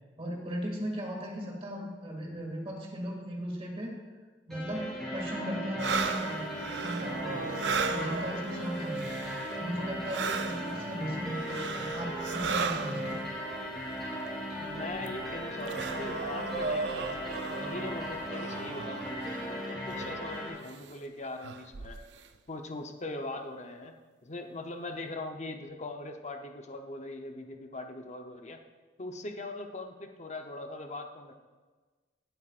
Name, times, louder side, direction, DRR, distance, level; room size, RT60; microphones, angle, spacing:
voice 1, 0.2-4.0 4.5-6.4 6.8-9.3 9.6-13.2, equal, 35° right, -1 dB, 2.3 m, -37 dB
sound 1, 4.5-20.5, equal, ahead, 3.7 m, -37 dB
sound 2, 5.8-9.7 10.0-13.3 14.3-14.4 14.7-19.4 19.9-20.2 20.7-20.9 21.4-22.2, right 5 dB, 75° right, 0.5 m, -36 dB
voice 2, 14.6-22.0 22.5-28.6 29.0-31.3, left 2 dB, 40° left, 4 dB, 0.8 m, -41 dB
19.0 x 7.9 x 2.5 m, 1.3 s
head